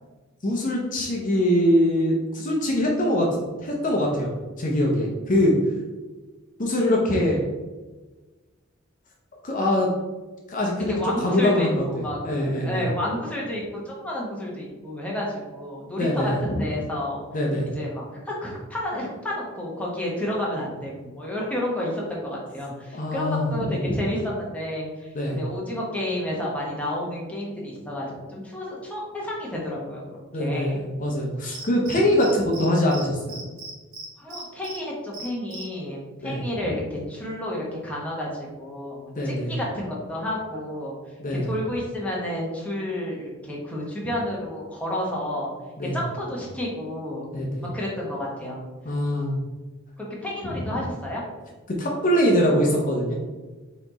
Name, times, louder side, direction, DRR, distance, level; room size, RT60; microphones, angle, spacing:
voice 1, 0.4-3.3 3.6-4.3 4.6-5.6 6.6-7.4 9.4-9.9 10.5-11.8 12.2-12.9 16.0-16.6 17.3-17.7 22.9-24.0 25.1-25.4 30.3-33.4 36.2-36.5 39.2-39.6 41.2-41.5 45.8-46.0 47.3-47.7 48.8-49.4 50.4-50.8 51.7-53.1, left 1 dB, 40° left, -1 dB, 0.7 m, -23 dB
voice 2, 10.9-17.2 17.7-30.9 34.2-41.0 41.3-45.5 45.9-47.3 47.7-48.6 50.0-51.2, left 1 dB, 5° left, -4 dB, 0.9 m, -31 dB
Cricket, 31.5-32.7 32.9-33.0 33.3-34.8 35.1-35.6, right 3 dB, 90° right, 1.5 m, -37 dB
4.1 x 3.0 x 3.9 m, 1.2 s
head